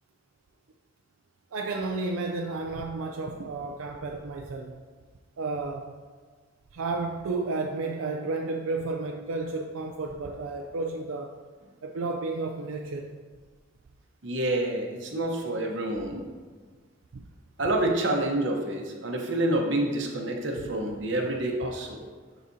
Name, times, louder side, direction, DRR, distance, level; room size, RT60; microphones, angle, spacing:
voice 1, 1.5-4.7 5.4-5.9 6.7-11.4 11.8-13.1 17.1-17.2 20.7-20.9, right 3 dB, 85° right, 2 dB, 0.4 m, -32 dB
voice 2, 14.2-16.2 17.6-22.0, right 1 dB, 60° right, 1 dB, 1.0 m, -28 dB
11.0 x 4.0 x 2.7 m, 1.5 s
head